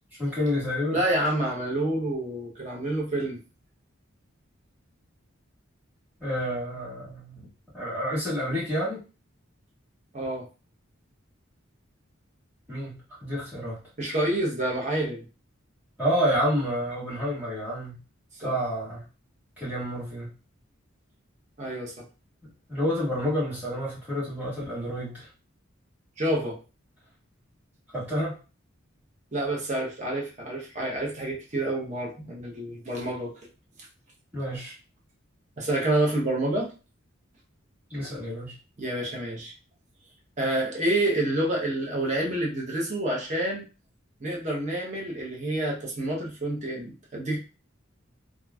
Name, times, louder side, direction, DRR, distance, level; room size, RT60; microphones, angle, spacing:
voice 1, 0.2-1.0 6.2-7.5 7.7-9.0 12.7-13.8 16.0-18.0 18.4-19.0 19.6-20.3 22.7-25.3 27.9-28.4 34.3-34.7 37.9-38.5, equal, 10° right, -10 dB, 1.6 m, -29 dB
voice 2, 0.9-3.4 10.1-10.5 14.0-15.2 18.4-18.6 21.6-22.0 26.2-26.6 29.3-33.3 35.6-36.7 38.8-39.5 40.4-43.6 44.2-47.4, right 1 dB, 35° right, -2 dB, 0.8 m, -28 dB
2.9 x 2.5 x 2.3 m, 0.32 s
head